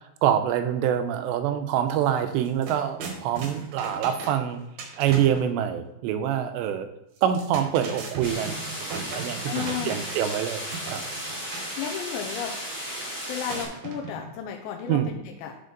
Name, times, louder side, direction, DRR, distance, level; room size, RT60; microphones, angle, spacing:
voice 1, 0.2-4.6 5.0-6.9 7.2-10.6 10.9-11.0 14.9-15.1, right 10 dB, 85° right, 9 dB, 2.9 m, -25 dB
sound 1, 2.0-2.1 2.4-5.5 7.2-10.4 10.7-11.7 13.5-14.4, right 4 dB, 65° right, 2.0 m, -38 dB
sound 2, 8.2-13.6, equal, 30° right, 1.2 m, -35 dB
voice 2, 9.4-10.0 11.8-12.6 13.3-15.6, left 9 dB, 90° left, 2 dB, 3.0 m, -33 dB
11.5 x 4.4 x 3.9 m, 0.87 s
omnidirectional pair, 5.0 m